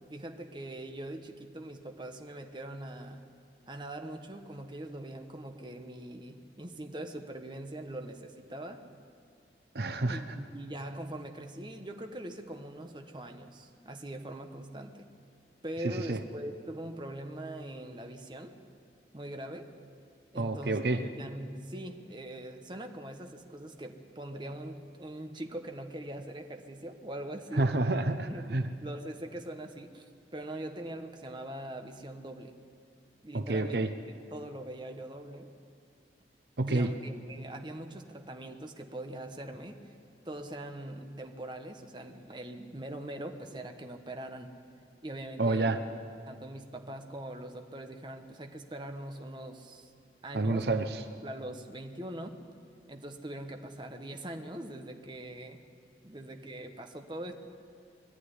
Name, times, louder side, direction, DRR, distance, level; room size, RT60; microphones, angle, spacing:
voice 1, 0.1-3.3 3.7-8.8 10.1-15.0 15.6-18.5 19.1-19.7 20.3-27.7 28.3-30.0 30.3-32.6 33.2-33.8 34.1-35.6 36.7-39.9 40.2-44.5 45.0-45.8 46.3-49.9 50.2-50.7 51.2-52.4 52.9-55.6 56.0-57.3, right 1 dB, 25° right, 5 dB, 1.2 m, -42 dB
voice 2, 9.7-10.2 16.1-16.2 20.3-21.0 27.5-28.6 33.3-33.9 36.6-36.9 45.4-45.8 50.3-51.0, right 2 dB, 70° right, 9 dB, 0.8 m, -28 dB
21.5 x 13.5 x 9.7 m, 2.3 s
head